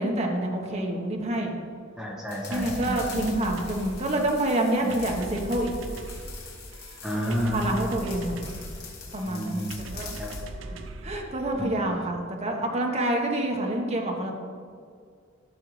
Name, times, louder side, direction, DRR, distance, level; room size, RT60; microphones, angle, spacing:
voice 1, 0.0-1.5 2.5-5.7 7.5-8.4 9.1-9.7 9.9-10.1 10.6-10.7 11.0-14.3, right 1 dB, 35° right, 0 dB, 1.2 m, -27 dB
voice 2, 2.0-3.3 4.8-4.9 7.0-7.8 8.1-8.2 9.2-10.3 11.6-11.7, equal, 5° right, -4 dB, 1.3 m, -31 dB
sound 1, 2.3-10.5, left 6 dB, 55° left, 1.7 m, -44 dB
sound 2, 2.5-12.1, right 2 dB, 75° right, 0.6 m, -40 dB
13.0 x 6.5 x 3.2 m, 2.2 s
head